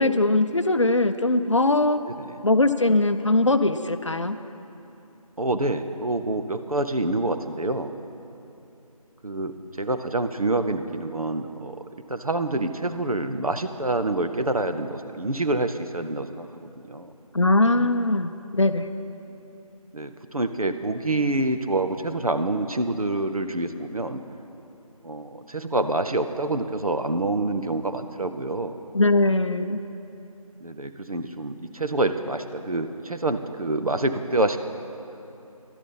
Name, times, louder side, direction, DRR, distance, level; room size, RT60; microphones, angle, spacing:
voice 1, 0.0-2.0 2.4-4.4 17.3-18.9 28.9-29.8, left 2 dB, 55° left, 10 dB, 0.5 m, -21 dB
voice 2, 2.0-2.4 5.4-7.9 9.2-11.8 12.1-17.1 19.9-24.2 25.0-28.8 30.6-34.6, right 2 dB, 70° right, 8 dB, 0.8 m, -27 dB
12.0 x 11.0 x 5.5 m, 2.8 s
figure-of-eight pair, 165°, 19 cm